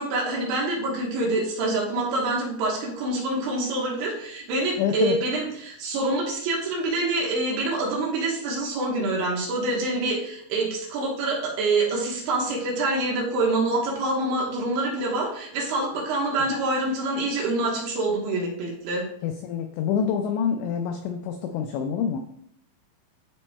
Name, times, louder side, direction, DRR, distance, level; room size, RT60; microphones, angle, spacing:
voice 1, 0.0-19.1, right 2 dB, 70° right, -3 dB, 3.0 m, -26 dB
voice 2, 4.8-5.2 16.4-16.5 19.2-22.3, left 7 dB, 90° left, 5 dB, 2.5 m, -27 dB
12.0 x 4.2 x 2.2 m, 0.69 s
omnidirectional pair, 5.6 m